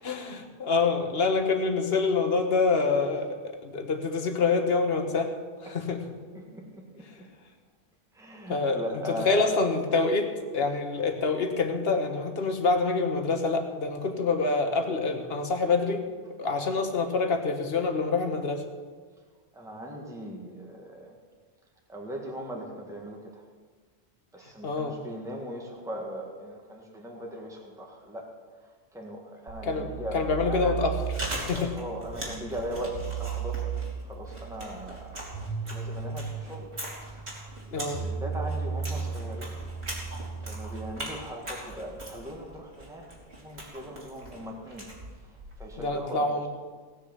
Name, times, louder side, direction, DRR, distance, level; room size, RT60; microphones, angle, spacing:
voice 1, 0.0-5.3 5.6-6.0 8.5-16.0 16.4-18.6 24.6-25.0 29.6-31.0 31.5-31.7 37.7-38.0 45.8-46.5, left 4 dB, 60° left, 6 dB, 1.5 m, -26 dB
voice 2, 6.3-7.3 8.2-9.5 19.5-21.1 21.9-23.2 24.3-28.3 28.9-30.2 30.5-30.8 31.4-33.7 34.1-35.1 35.7-36.7 37.8-39.6 40.5-43.1 43.4-44.9 45.6-46.2, equal, 5° right, -1 dB, 1.7 m, -39 dB
sound 1, 29.5-40.9, right 6 dB, 60° right, 2.5 m, -36 dB
Chewing mastication, 31.0-45.9, right 1 dB, 75° right, 3.3 m, -41 dB
17.5 x 6.6 x 7.9 m, 1.5 s
omnidirectional pair, 1.1 m